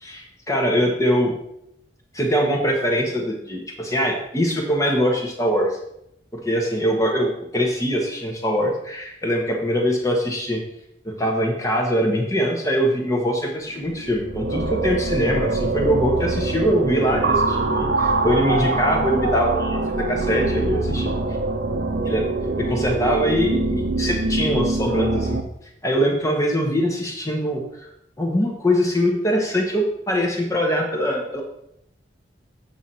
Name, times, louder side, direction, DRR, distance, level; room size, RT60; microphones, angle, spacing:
voice 1, 0.0-1.3 2.1-5.7 6.3-10.6 11.0-21.1 22.1-22.3 22.6-25.4 25.8-27.9 28.2-31.4, equal, 15° left, 0 dB, 1.3 m, -22 dB
sound 1, 13.8-25.4, right 2 dB, 70° right, 0.8 m, -24 dB
7.7 x 6.2 x 4.2 m, 0.77 s
head